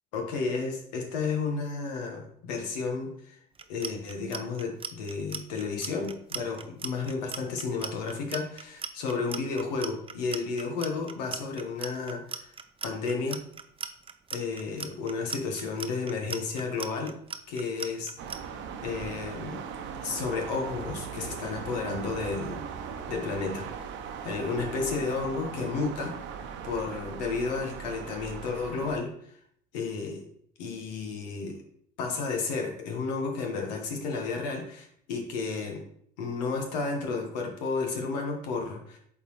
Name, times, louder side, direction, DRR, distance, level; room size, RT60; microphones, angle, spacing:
voice 1, 0.1-3.4 3.7-12.5 12.8-13.4 14.3-17.2 17.5-18.1 18.8-19.7 20.0-22.6 23.1-23.7 24.2-26.2 26.6-29.3 29.7-30.2 30.6-31.6 32.0-35.9 36.2-39.0, left 4 dB, 90° left, 2 dB, 1.3 m, -32 dB
Clock, 3.5-18.4, right 6 dB, 25° right, 0.6 m, -38 dB
sound 1, 18.2-29.0, right 7 dB, 65° right, 0.8 m, -39 dB
8.1 x 3.9 x 3.1 m, 0.67 s
hypercardioid pair, 70°, 21 cm